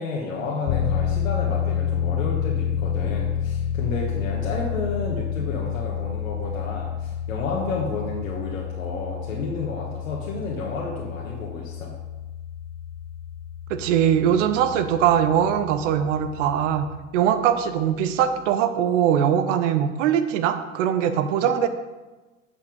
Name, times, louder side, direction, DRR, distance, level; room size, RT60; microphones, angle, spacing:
voice 1, 0.0-12.0, left 3 dB, 80° left, -3 dB, 1.3 m, -31 dB
sound 1, 0.7-17.0, left 9 dB, 40° left, 0.5 m, -29 dB
voice 2, 13.7-16.9 17.1-21.7, right 9 dB, 65° right, 10 dB, 0.9 m, -21 dB
8.0 x 5.6 x 5.2 m, 1.2 s
hypercardioid pair, 80°, 40 cm